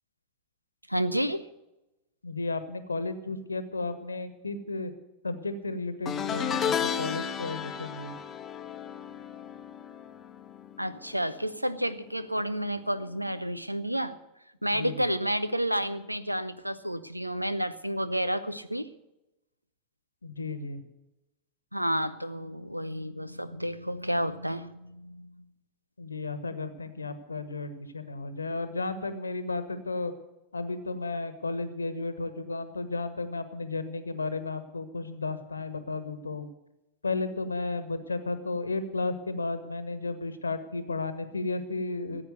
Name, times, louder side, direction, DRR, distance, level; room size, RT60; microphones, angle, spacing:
voice 1, 0.9-1.5 10.8-14.2 14.6-18.9 21.7-25.4, equal, 90° right, 14 dB, 0.7 m, -30 dB
voice 2, 2.2-4.9 5.2-8.2 14.7-15.0 20.2-20.8 26.0-30.1 30.5-36.5 37.0-42.2, left 3 dB, 80° left, 11 dB, 1.3 m, -33 dB
sound 1, 6.1-11.5 11.7-12.1 13.3-13.4, left 8 dB, 25° left, 0.9 m, -33 dB
15.5 x 8.8 x 7.8 m, 0.95 s
figure-of-eight pair, 90°, 0 cm